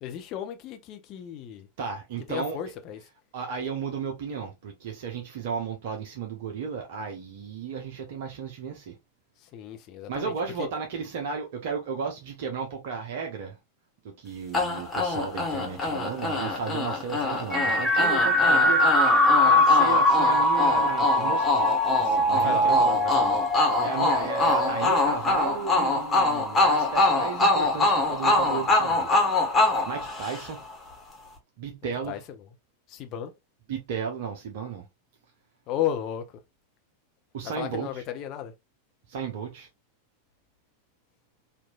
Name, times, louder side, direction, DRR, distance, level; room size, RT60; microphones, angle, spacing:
voice 1, 0.0-1.7 2.3-3.0 9.5-10.3 10.6-10.7 22.4-23.4 32.1-32.2 32.9-33.3 35.7-36.3 37.5-38.5, left 10 dB, 35° left, 0.7 m, -33 dB
voice 2, 1.8-2.6 3.3-8.9 10.1-13.6 14.0-21.7 22.0-23.2 23.8-29.2 29.5-30.6 31.6-32.2 33.7-34.8 37.3-38.0 39.1-39.7, right 5 dB, 50° right, 0.7 m, -34 dB
sound 1, 14.5-30.7, left 2 dB, 15° left, 1.4 m, -25 dB
sound 2, 17.5-25.0, left 1 dB, ahead, 1.0 m, -22 dB
4.4 x 2.6 x 2.4 m
figure-of-eight pair, 90°, 0 cm